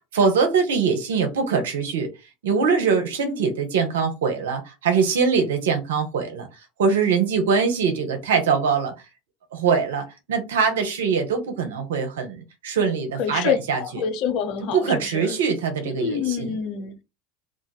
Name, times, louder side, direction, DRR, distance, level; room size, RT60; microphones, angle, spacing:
voice 1, 0.1-2.1 2.4-6.5 6.8-8.9 9.5-13.8 14.7-16.5, right 5 dB, 80° right, 0.8 m, -22 dB
voice 2, 13.2-15.4 15.8-17.0, left 7 dB, 60° left, 0.6 m, -27 dB
2.6 x 2.4 x 4.0 m
hypercardioid pair, 80°, 0 cm